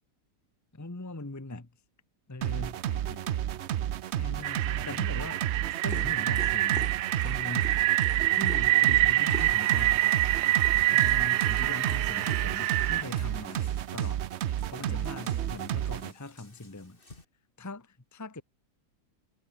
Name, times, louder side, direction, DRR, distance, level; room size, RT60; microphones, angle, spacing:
voice 1, 0.7-1.7 2.3-2.8 4.1-5.4 5.8-7.7 8.3-10.0 10.9-14.3 14.7-17.0 17.6-18.4, left 2 dB, 10° left, 1.2 m, -41 dB
sound 1, 2.4-16.1, right 11 dB, 60° right, 0.7 m, -32 dB
voice 2, 2.8-3.5 14.8-15.8, left 5 dB, 55° left, 2.5 m, -49 dB
sound 2, 4.4-13.0, right 15 dB, 85° right, 1.2 m, -26 dB
Dog, 5.7-17.2, left 2 dB, 35° left, 3.4 m, -48 dB
omnidirectional pair, 1.7 m